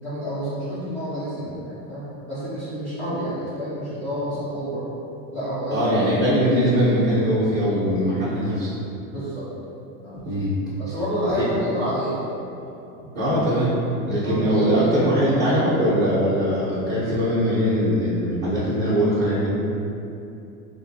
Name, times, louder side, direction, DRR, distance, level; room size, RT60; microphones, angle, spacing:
voice 1, 0.0-4.8 5.3-5.8 9.1-9.5 10.0-10.4 10.8-12.2 14.2-15.1, right 1 dB, 5° left, -15 dB, 0.3 m, -28 dB
voice 2, 5.7-8.7 10.2-10.5 10.9-11.0 11.4-11.5 13.1-19.5, equal, 25° right, -11 dB, 0.7 m, -21 dB
3.2 x 2.1 x 2.7 m, 2.8 s
hypercardioid pair, 110°, 48 cm